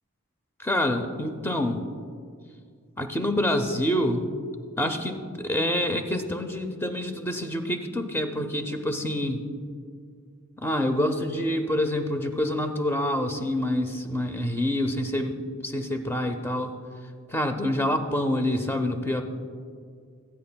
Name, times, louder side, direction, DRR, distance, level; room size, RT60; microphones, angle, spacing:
voice 1, 0.6-1.8 3.0-4.2 4.8-9.4 10.6-16.8 17.3-19.2, left 1 dB, 10° left, 6 dB, 0.5 m, -27 dB
18.5 x 8.6 x 2.2 m, 2.1 s
head